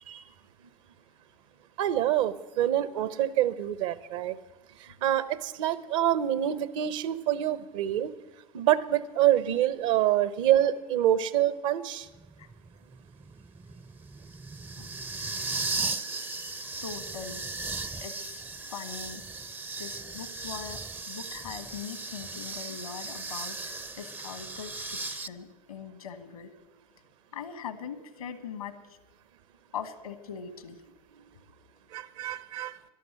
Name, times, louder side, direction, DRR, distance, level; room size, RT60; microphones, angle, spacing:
voice 1, 1.8-4.3 5.0-8.1 8.5-12.1 31.9-32.7, right 12 dB, 60° right, 16 dB, 0.9 m, -26 dB
sound 1, 12.1-25.3, right 3 dB, 10° right, 0.5 m, -37 dB
voice 2, 16.8-17.4 18.0-19.2 19.8-20.8 21.1-26.5 27.3-28.7 29.7-30.8, left 7 dB, 75° left, 12 dB, 1.3 m, -41 dB
12.0 x 12.0 x 7.5 m, 1.2 s
figure-of-eight pair, 75°, 18 cm